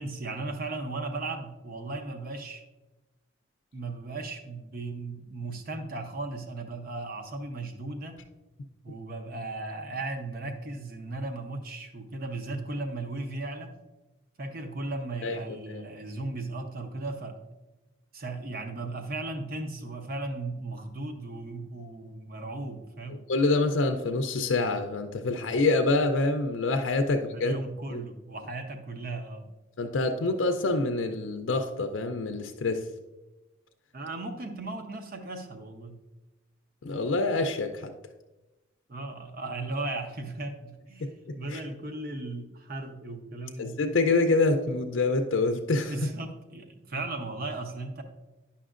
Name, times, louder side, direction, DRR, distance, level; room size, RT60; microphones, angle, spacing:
voice 1, 0.0-2.6 3.7-8.2 8.8-13.8 14.4-17.4 18.1-23.2 27.1-29.5 33.9-36.0 38.9-41.1 41.4-43.8 45.9-48.0, right 2 dB, 45° right, 5 dB, 0.7 m, -36 dB
voice 2, 23.3-27.5 27.9-28.0 29.8-32.8 36.8-37.9 41.0-41.6 43.6-45.9, left 3 dB, 70° left, 5 dB, 0.5 m, -26 dB
10.0 x 5.7 x 2.5 m, 1.1 s
head